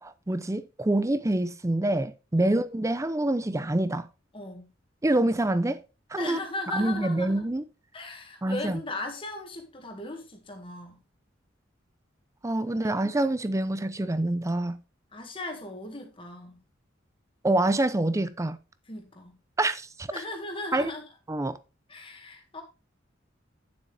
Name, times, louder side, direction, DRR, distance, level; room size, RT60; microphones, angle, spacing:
voice 1, 0.0-4.1 5.0-5.8 6.1-6.4 6.7-7.6 8.4-8.8 12.4-14.8 17.4-18.6 19.6-20.1 20.7-20.9 21.3-21.6, right 1 dB, 15° right, 0.5 m, -26 dB
voice 2, 4.3-4.7 6.2-7.4 7.9-11.0 15.1-16.6 18.9-19.4 20.1-21.0 21.9-22.6, left 2 dB, 30° left, 1.9 m, -37 dB
9.1 x 7.3 x 3.3 m
head